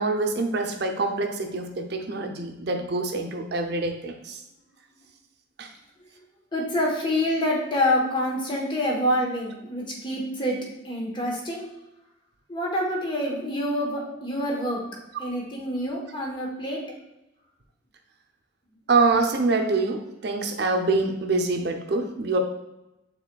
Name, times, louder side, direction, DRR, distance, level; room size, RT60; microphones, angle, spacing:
voice 1, 0.0-4.4 5.6-5.7 18.9-22.4, right 3 dB, 60° right, 4 dB, 0.6 m, -25 dB
voice 2, 6.5-10.6 10.8-11.6 12.5-14.8 15.2-16.8, left 1 dB, 25° left, -2 dB, 1.0 m, -26 dB
5.7 x 3.7 x 2.3 m, 0.94 s
head